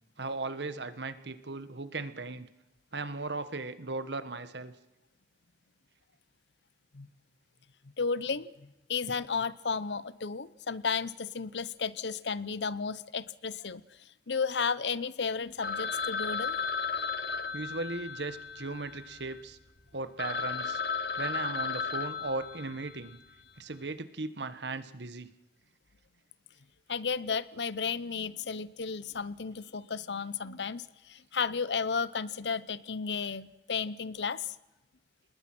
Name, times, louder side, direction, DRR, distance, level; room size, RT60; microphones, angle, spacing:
voice 1, 0.2-2.5 2.9-4.7 17.5-19.6 19.9-20.8 21.2-23.2 23.6-25.3, right 3 dB, 85° right, 12 dB, 1.4 m, -37 dB
voice 2, 8.0-16.6 26.9-34.5, left 5 dB, 85° left, 17 dB, 0.8 m, -33 dB
Telephone, 15.6-19.4 19.9-20.0 20.2-23.1, left 5 dB, 70° left, 1.5 m, -34 dB
28.0 x 20.5 x 6.2 m, 0.99 s
head